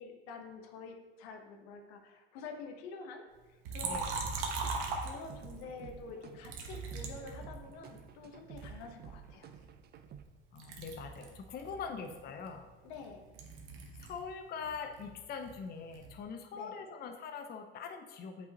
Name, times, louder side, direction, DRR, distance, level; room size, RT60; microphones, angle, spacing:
voice 1, 0.0-4.0 5.0-9.6 11.9-12.1 12.8-13.3 16.5-16.8, left 4 dB, 75° left, 4 dB, 1.2 m, -48 dB
Liquid, 3.6-5.6 6.4-8.0 8.6-10.3 10.6-14.3 14.5-16.2, right 4 dB, 70° right, 1.3 m, -40 dB
sound 1, 3.8-10.2, right 8 dB, 30° right, 0.5 m, -52 dB
voice 2, 10.5-12.7 14.0-18.5, left 5 dB, 30° left, 6 dB, 0.6 m, -43 dB
7.9 x 5.4 x 3.0 m, 1.2 s
supercardioid pair, 100°, 32 cm